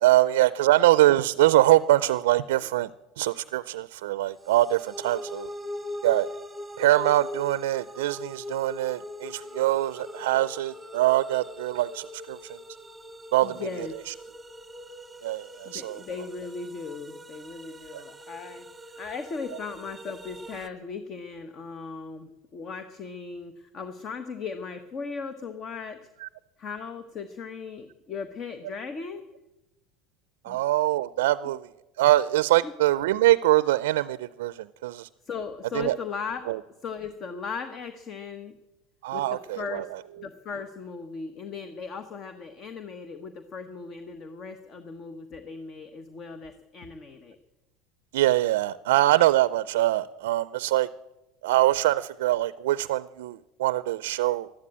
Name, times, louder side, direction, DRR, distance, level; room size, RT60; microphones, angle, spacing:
voice 1, 0.0-2.9 3.2-5.5 6.0-6.3 6.8-12.6 13.3-14.1 15.2-16.0 17.9-18.0 26.2-26.3 30.4-31.7 32.0-35.1 35.7-36.0 36.5-36.6 39.0-39.8 48.1-50.9 51.4-54.5, right 15 dB, 80° right, 17 dB, 0.4 m, -23 dB
sound 1, 4.4-20.7, left 1 dB, 10° right, 1.1 m, -41 dB
voice 2, 13.4-14.0 15.6-18.7 19.0-26.0 26.6-29.2 30.5-30.6 32.6-32.7 35.2-36.5 36.8-38.5 39.1-39.2 39.6-39.9 40.2-47.4, left 5 dB, 40° left, 9 dB, 1.3 m, -37 dB
13.0 x 12.5 x 8.7 m, 0.98 s
hypercardioid pair, 95°, 0 cm